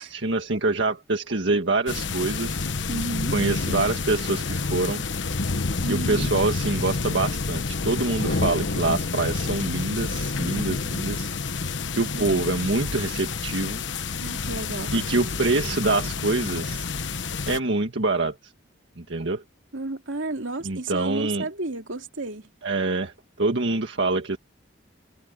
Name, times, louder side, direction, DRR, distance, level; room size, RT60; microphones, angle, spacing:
voice 1, 0.0-2.7 3.3-5.0 5.9-11.3 11.9-13.8 14.9-16.8 17.5-18.5 19.0-19.4 20.6-21.4 22.6-24.4, right 2 dB, 70° right, 1.7 m, -25 dB
sound 1, 1.9-17.6, left 4 dB, 70° left, 1.1 m, -28 dB
voice 2, 2.9-3.3 5.8-6.3 12.1-12.2 14.2-15.0 19.7-22.5, right 2 dB, 85° right, 2.7 m, -32 dB
head